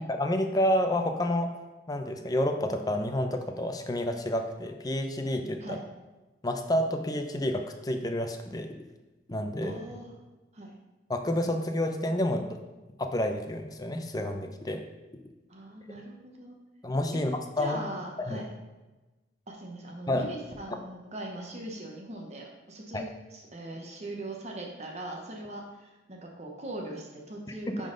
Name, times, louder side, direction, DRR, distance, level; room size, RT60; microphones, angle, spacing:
voice 1, 0.2-1.5 1.9-5.8 6.4-8.7 9.3-9.8 11.1-12.6 13.0-14.8 16.8-17.8 18.2-18.4 20.1-20.3 20.7-20.8 22.9-23.0, left 1 dB, 20° left, 6 dB, 0.5 m, -29 dB
voice 2, 9.6-10.1 10.5-10.8 15.5-16.6 17.1-17.2 17.6-18.5 19.5-27.9, right 1 dB, 40° right, 0 dB, 0.9 m, -40 dB
10.0 x 3.9 x 3.9 m, 1.1 s
head